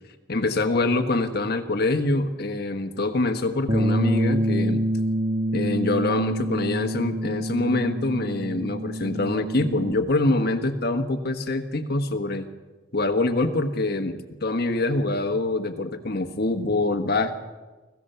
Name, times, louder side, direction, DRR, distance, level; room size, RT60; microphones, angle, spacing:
voice 1, 0.3-4.8 5.5-12.5 12.9-17.4, left 2 dB, 55° left, 6 dB, 1.3 m, -25 dB
Bass guitar, 3.7-9.9, right 1 dB, 40° right, 1.5 m, -26 dB
25.5 x 15.5 x 6.9 m, 1.2 s
head